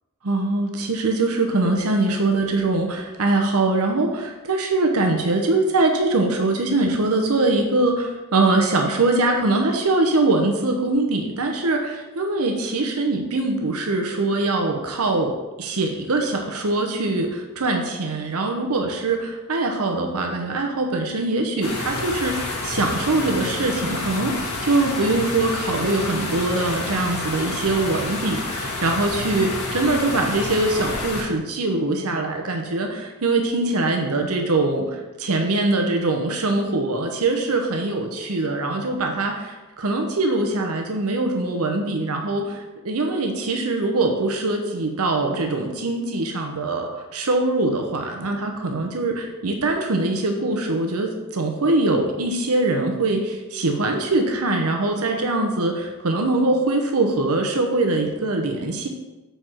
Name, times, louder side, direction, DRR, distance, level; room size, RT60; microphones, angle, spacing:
voice 1, 0.2-58.9, right 2 dB, 75° right, 3 dB, 0.9 m, -22 dB
sound 1, 21.6-31.2, left 2 dB, 75° left, 1.8 m, -29 dB
6.8 x 4.5 x 4.5 m, 1.1 s
head